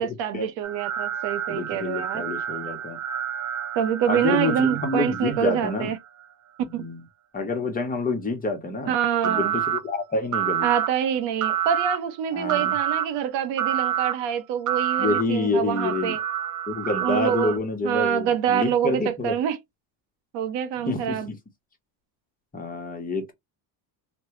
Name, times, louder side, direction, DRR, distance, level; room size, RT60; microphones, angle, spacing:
voice 1, 0.0-2.2 3.7-6.0 6.7-6.9 8.9-9.5 10.6-16.2 17.0-17.6 17.8-19.6 20.3-21.3, right 9 dB, 70° right, 0.9 m, -26 dB
sound 1, 0.6-6.0 9.2-9.8 10.3-10.9 11.4-12.0 12.5-13.0 13.6-14.1 14.7-15.2 15.8-17.6, right 11 dB, 45° right, 0.6 m, -28 dB
voice 2, 1.5-3.0 4.1-5.9 6.7-7.0 7.3-8.9 9.2-10.7 12.3-12.7 15.0-16.1 16.7-19.4 20.8-21.4 22.5-23.3, left 3 dB, 20° left, 1.0 m, -27 dB
3.0 x 2.2 x 3.1 m
cardioid pair, 110°, 45 cm